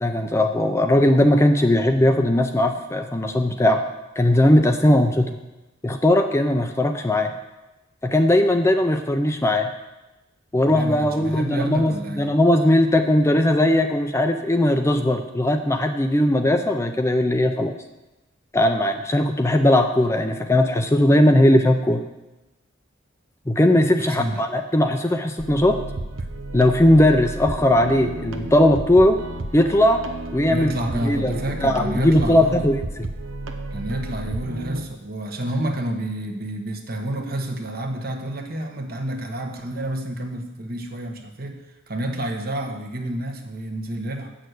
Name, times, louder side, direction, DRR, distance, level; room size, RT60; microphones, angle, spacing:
voice 1, 0.0-3.9 4.2-5.4 5.8-7.3 8.0-9.7 10.5-17.7 18.5-22.0 23.5-25.8 26.5-29.2 29.5-30.0 30.3-30.7 31.0-31.3 31.6-32.8, left 1 dB, 15° left, 6 dB, 0.5 m, -18 dB
voice 2, 10.7-12.3 24.0-24.5 30.5-32.7 33.7-44.4, right 1 dB, 50° right, 4 dB, 1.2 m, -29 dB
sound 1, 25.4-34.8, right 2 dB, 75° right, 0.9 m, -32 dB
7.8 x 6.4 x 8.1 m, 1.0 s
head